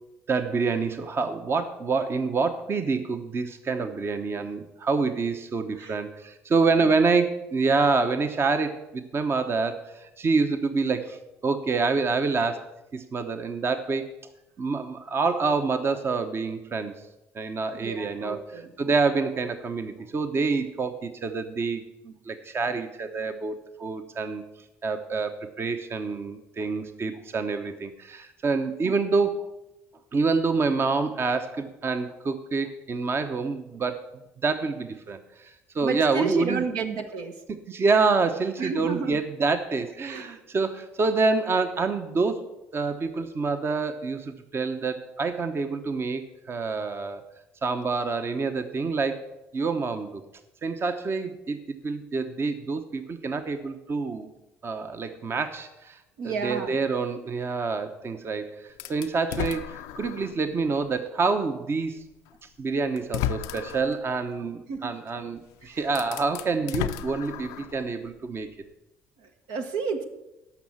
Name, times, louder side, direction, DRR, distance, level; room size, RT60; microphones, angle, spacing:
voice 1, 0.3-12.6 12.9-14.1 14.6-16.9 17.3-18.5 18.8-24.4 24.8-29.5 30.1-34.0 34.4-36.6 37.7-42.5 42.7-47.2 47.6-49.2 49.5-50.2 50.6-54.3 54.6-56.0 56.2-62.0 62.6-68.5, right 4 dB, 40° right, 8 dB, 1.0 m, -27 dB
voice 2, 17.7-18.7 35.8-37.4 38.6-39.2 40.0-40.4 56.2-56.8 64.7-65.0 65.6-65.8 69.2-70.0, right 4 dB, 70° right, 5 dB, 1.1 m, -32 dB
sound 1, 58.8-60.4 61.0-61.1 62.3-62.4 63.0-63.9 65.4-65.5 65.9-67.8, left 12 dB, 75° left, 0.5 m, -33 dB
13.0 x 5.6 x 7.3 m, 0.96 s
hypercardioid pair, 60°, 7 cm